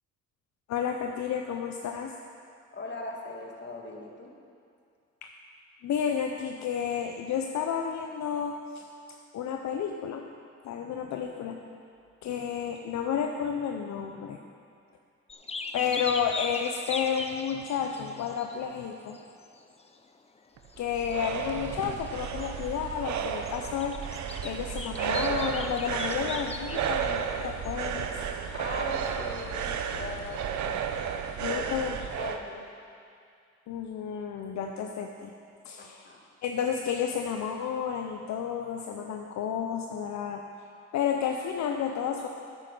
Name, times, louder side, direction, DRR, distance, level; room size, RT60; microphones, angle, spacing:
voice 1, 0.7-2.1 5.2-5.3 5.8-8.8 9.3-10.2 10.6-11.6 12.2-14.4 15.7-19.2 20.8-24.0 24.4-28.1 31.4-32.0 33.7-35.3 35.6-36.1 36.4-40.4 40.9-42.3, left 7 dB, 65° left, 3 dB, 0.7 m, -31 dB
voice 2, 2.7-4.4 28.5-30.5 31.5-31.9 32.2-32.7 35.8-36.2, left 3 dB, 35° left, 0 dB, 1.7 m, -40 dB
sound 1, 15.3-18.8 19.1-20.0 20.4-20.5 20.6-27.1 27.6-28.0 31.4-31.5, left 3 dB, 20° left, 0.6 m, -39 dB
sound 2, 20.6-32.4, right 7 dB, 70° right, 0.7 m, -33 dB
9.1 x 8.9 x 5.4 m, 2.4 s
cardioid pair, 90°, 30 cm